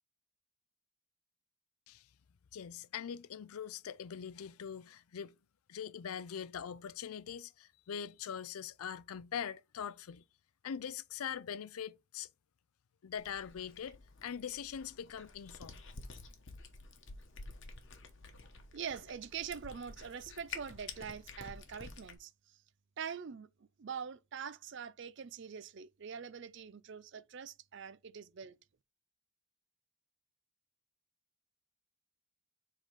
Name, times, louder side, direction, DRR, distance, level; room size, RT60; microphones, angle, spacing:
voice 1, 2.5-5.4 5.7-10.2 10.6-12.3 13.0-15.8, left 8 dB, 80° left, 0.4 m, -42 dB
Cat, 13.2-22.2, left 4 dB, 55° left, 1.1 m, -50 dB
voice 2, 18.7-22.6 23.0-28.6, right 7 dB, 55° right, 0.5 m, -44 dB
5.0 x 3.8 x 5.5 m
head